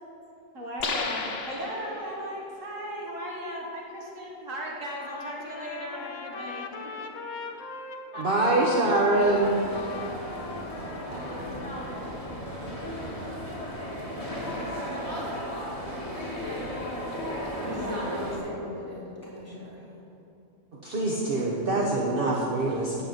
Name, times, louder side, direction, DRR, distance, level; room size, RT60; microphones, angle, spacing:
voice 1, 0.5-6.9 8.1-8.2, equal, 70° right, -2 dB, 2.0 m, -37 dB
sound 1, 0.8-2.4, left 4 dB, 50° left, 1.2 m, -33 dB
Trumpet, 5.0-11.9, left 4 dB, 75° left, 1.2 m, -40 dB
voice 2, 8.2-9.6 20.8-23.0, right 2 dB, 45° right, -3 dB, 1.3 m, -24 dB
sound 2, 9.1-18.4, equal, 25° left, 2.4 m, -35 dB
voice 3, 11.1-11.5 17.6-19.8 22.8-23.0, left 1 dB, 10° left, -8 dB, 3.3 m, -38 dB
13.5 x 4.7 x 8.9 m, 2.9 s
omnidirectional pair, 1.4 m